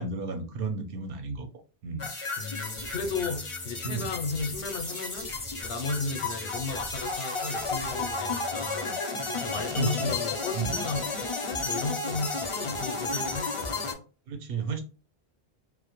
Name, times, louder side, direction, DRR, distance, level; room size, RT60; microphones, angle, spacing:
voice 1, 0.0-1.5 1.8-2.1 3.8-4.1 9.2-10.1 10.5-10.8 14.3-14.8, right 4 dB, 70° right, 0.7 m, -33 dB
sound 1, 2.0-13.9, left 3 dB, 40° left, 0.5 m, -33 dB
voice 2, 2.4-5.3 5.6-9.0 9.3-14.0, left 4 dB, 80° left, 0.8 m, -34 dB
sound 2, 2.5-8.8, right 1 dB, 25° right, 0.5 m, -45 dB
2.1 x 2.1 x 2.9 m
omnidirectional pair, 1.0 m